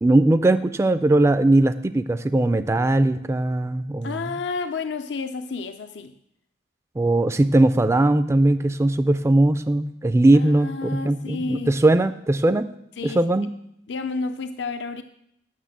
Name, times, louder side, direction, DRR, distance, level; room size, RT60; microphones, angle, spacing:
voice 1, 0.0-4.2 7.0-12.7 13.0-13.5, right 2 dB, 15° right, 10 dB, 0.3 m, -19 dB
voice 2, 4.0-6.1 10.3-11.8 13.0-13.3 13.9-15.0, left 4 dB, 80° left, 9 dB, 0.5 m, -30 dB
9.3 x 6.5 x 7.4 m, 0.77 s
head